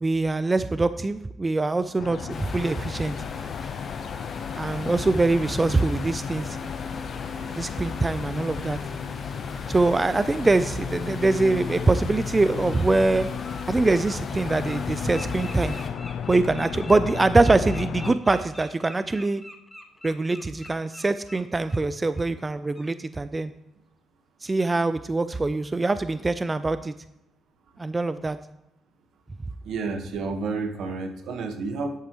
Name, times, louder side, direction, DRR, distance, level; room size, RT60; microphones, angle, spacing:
voice 1, 0.0-3.1 4.5-6.6 7.6-8.8 9.7-13.3 13.7-15.8 16.3-19.4 20.0-23.5 24.4-26.9 27.8-28.4, right 3 dB, 20° right, 12 dB, 0.4 m, -23 dB
sound 1, 2.0-18.2, left 8 dB, 65° left, 0.4 m, -35 dB
sound 2, 2.3-15.9, left 4 dB, 45° left, 1.4 m, -37 dB
Bird, 11.9-12.0 12.4-12.8 13.1-21.8 22.1-22.3 22.7-22.9, left 1 dB, 10° left, 1.4 m, -45 dB
voice 2, 29.6-31.9, right 4 dB, 75° right, 6 dB, 1.3 m, -30 dB
11.0 x 8.3 x 3.0 m, 0.92 s
cardioid pair, 90°, 0 cm